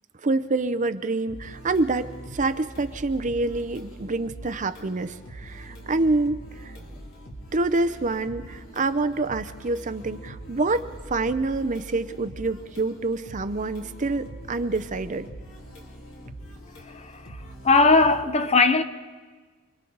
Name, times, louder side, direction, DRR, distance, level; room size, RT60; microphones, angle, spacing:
voice 1, 0.2-6.7 7.5-15.3, right 3 dB, 35° right, 0.6 m, -27 dB
sound 1, 1.3-18.2, right 1 dB, 65° left, 2.5 m, -43 dB
voice 2, 16.8-18.8, left 3 dB, 30° left, 0.8 m, -20 dB
29.0 x 22.5 x 4.0 m
head